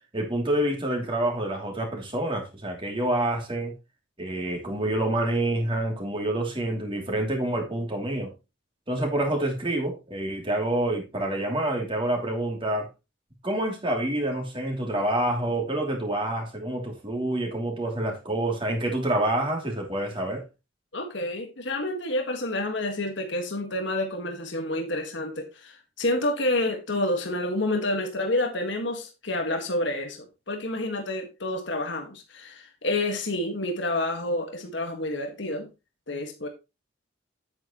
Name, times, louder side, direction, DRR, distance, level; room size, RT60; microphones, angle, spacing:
voice 1, 0.1-3.7 4.2-8.3 8.9-12.9 13.4-20.5, right 1 dB, 25° right, 2.9 m, -27 dB
voice 2, 20.9-35.7 36.1-36.5, left 1 dB, 65° left, 1.7 m, -29 dB
9.6 x 8.9 x 3.0 m
head